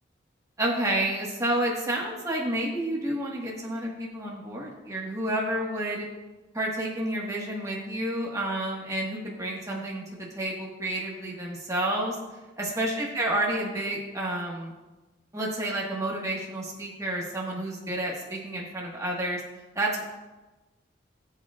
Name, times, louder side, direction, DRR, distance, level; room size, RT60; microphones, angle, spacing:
voice 1, 0.6-6.0 6.5-12.2 12.6-14.7 15.3-19.4 19.7-20.0, right 1 dB, 20° right, -3 dB, 1.5 m, -30 dB
16.5 x 7.3 x 2.4 m, 1.1 s
head